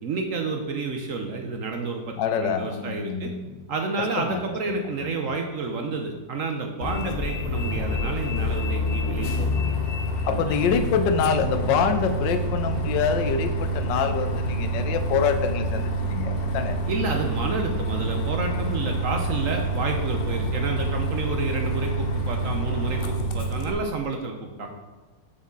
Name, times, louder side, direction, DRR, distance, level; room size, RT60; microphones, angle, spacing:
voice 1, 0.0-3.3 3.7-9.8 10.3-10.7 16.9-24.7, right 3 dB, 60° right, 3 dB, 0.9 m, -30 dB
voice 2, 2.2-3.4 4.2-4.4 4.7-4.8 5.1-5.2 10.3-16.8, left 7 dB, 90° left, 9 dB, 1.4 m, -25 dB
Bus, 6.8-23.7, right 1 dB, 60° left, 0.6 m, -27 dB
7.1 x 6.4 x 3.7 m, 1.3 s
omnidirectional pair, 1.9 m